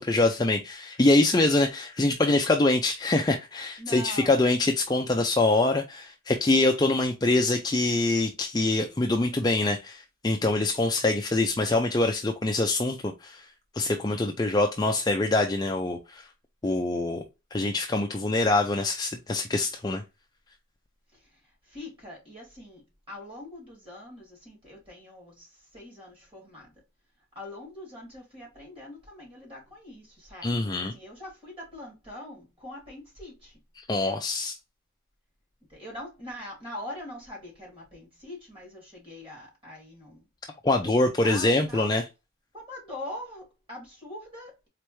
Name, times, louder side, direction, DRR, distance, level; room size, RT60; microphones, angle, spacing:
voice 1, 0.0-13.5 13.7-16.3 16.6-17.2 17.5-20.0 30.4-30.9 33.8-34.6 40.6-42.1, left 2 dB, 20° left, 0.4 m, -24 dB
voice 2, 3.8-4.3 21.7-22.8 23.1-25.5 25.7-26.7 27.4-30.5 30.9-33.5 35.7-40.2 41.2-41.9 42.5-44.7, left 1 dB, 25° right, 2.5 m, -42 dB
4.2 x 3.4 x 3.0 m
head